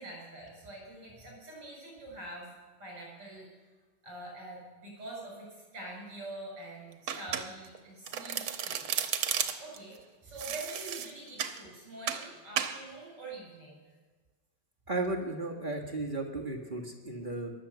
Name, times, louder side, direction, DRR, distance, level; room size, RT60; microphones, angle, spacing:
voice 1, 0.0-2.5 2.8-3.5 4.0-8.8 9.6-10.0 10.2-13.8, right 2 dB, 60° right, -2 dB, 7.7 m, -45 dB
Domestic sounds home sounds, 7.1-7.8 8.1-9.8 10.4-11.6 12.1-12.3 12.6-12.8, right 9 dB, 80° right, 1.9 m, -33 dB
voice 2, 14.9-17.5, right 2 dB, 25° right, 0 dB, 1.6 m, -34 dB
22.0 x 8.0 x 6.9 m, 1.4 s
omnidirectional pair, 2.3 m